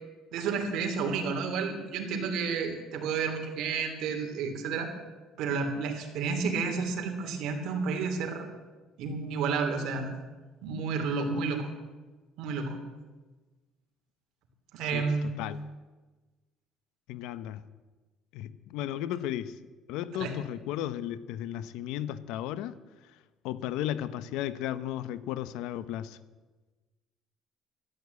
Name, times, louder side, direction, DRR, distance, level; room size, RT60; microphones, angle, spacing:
voice 1, 0.3-4.9 5.4-8.4 9.0-10.1 10.6-11.7 12.4-12.8 14.7-15.3 20.1-20.3, right 5 dB, 70° right, 4 dB, 3.0 m, -31 dB
voice 2, 17.1-17.6 18.3-19.6 19.9-22.8 23.4-26.2, left 12 dB, 90° left, 15 dB, 0.8 m, -34 dB
13.0 x 11.5 x 8.2 m, 1.2 s
cardioid pair, 135°, 0 cm